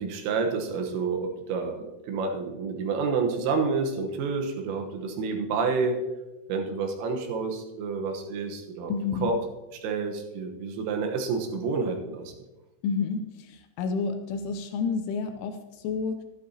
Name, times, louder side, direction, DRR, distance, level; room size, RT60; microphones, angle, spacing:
voice 1, 0.0-6.0 6.5-8.9 9.2-9.4 9.8-12.3, right 4 dB, 80° right, 4 dB, 3.8 m, -29 dB
voice 2, 8.9-9.3 12.8-16.2, left 5 dB, 80° left, 7 dB, 2.9 m, -30 dB
12.5 x 12.0 x 2.8 m, 1.1 s
omnidirectional pair, 5.9 m